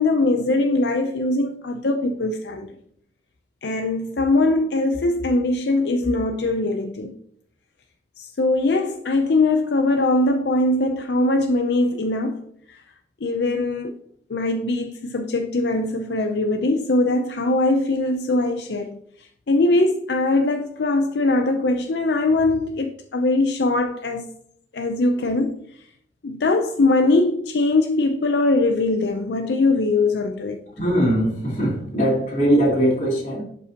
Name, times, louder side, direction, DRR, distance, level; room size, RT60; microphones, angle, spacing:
voice 1, 0.0-2.7 3.6-7.1 8.2-12.8 13.2-14.0 14.3-18.9 19.2-24.3 24.7-25.6 26.2-30.6, left 2 dB, 75° left, 0.6 m, -21 dB
voice 2, 30.7-33.4, equal, 45° left, 2.8 m, -20 dB
11.0 x 5.4 x 2.8 m
head